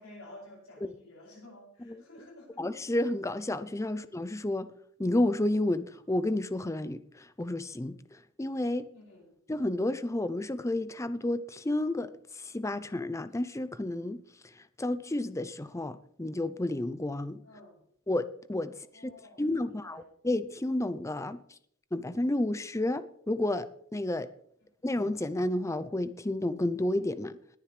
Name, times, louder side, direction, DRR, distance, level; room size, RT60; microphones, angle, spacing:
voice 1, 0.0-2.6 8.9-9.3 17.4-17.8 18.7-20.1, left 1 dB, 65° left, 7.1 m, -52 dB
voice 2, 2.6-4.7 5.0-8.0 8.4-8.9 9.5-12.1 12.4-14.2 14.8-17.4 18.1-18.7 19.0-19.1 19.4-21.4 21.9-24.3 24.8-27.4, left 1 dB, 15° left, 0.5 m, -31 dB
20.0 x 11.0 x 3.3 m
head